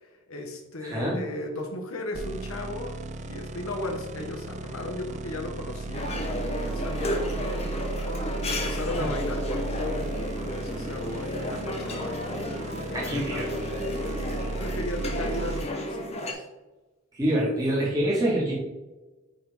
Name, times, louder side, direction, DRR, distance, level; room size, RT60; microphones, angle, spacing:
voice 1, 0.0-7.9 8.4-13.7 14.6-16.5, left 2 dB, 75° left, 2 dB, 1.4 m, -36 dB
voice 2, 0.8-1.2 9.0-9.1 12.9-13.5 17.1-18.5, right 1 dB, 15° right, -6 dB, 2.0 m, -26 dB
sound 1, 2.1-15.7, right 3 dB, 35° right, 0.4 m, -35 dB
sound 2, 5.9-16.3, left 1 dB, 30° left, 0.9 m, -33 dB
8.8 x 4.0 x 3.6 m, 1.1 s
head